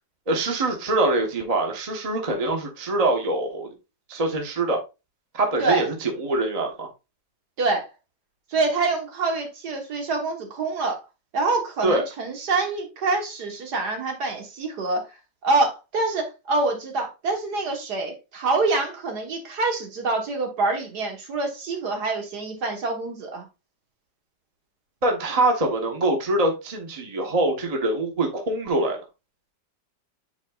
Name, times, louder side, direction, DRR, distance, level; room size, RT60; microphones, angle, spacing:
voice 1, 0.3-3.7 4.1-4.8 5.3-6.9 11.8-12.0 25.0-29.0, right 2 dB, 25° right, 1.0 m, -24 dB
voice 2, 7.6-7.9 8.5-11.0 11.3-15.1 15.4-23.5, right 3 dB, 60° right, 1.8 m, -26 dB
8.7 x 4.5 x 2.4 m
omnidirectional pair, 2.0 m